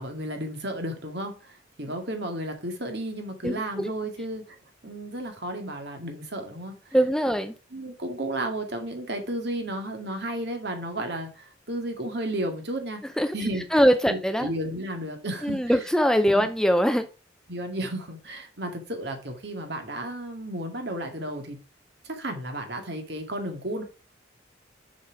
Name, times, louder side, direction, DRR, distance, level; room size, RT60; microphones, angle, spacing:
voice 1, 0.0-4.6 4.8-7.0 7.7-13.0 13.3-13.6 14.1-15.6 16.3-16.5 17.5-21.6 22.0-23.8, right 1 dB, 60° right, 4 dB, 2.0 m, -33 dB
voice 2, 3.4-3.9 6.9-7.5 13.2-13.3 13.7-14.5 15.4-17.1, equal, 5° left, 9 dB, 0.5 m, -22 dB
6.7 x 6.0 x 4.8 m, 0.33 s
head